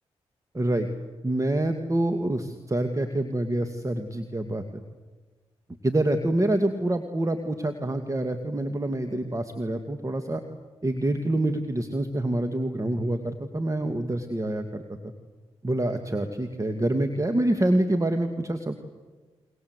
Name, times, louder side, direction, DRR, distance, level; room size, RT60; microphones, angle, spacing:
voice 1, 0.5-0.9 1.2-4.6 5.8-10.4 10.8-15.1 15.6-18.8, right 1 dB, 25° right, 7 dB, 2.1 m, -26 dB
30.0 x 23.5 x 8.1 m, 1.3 s
supercardioid pair, 45°, 12 cm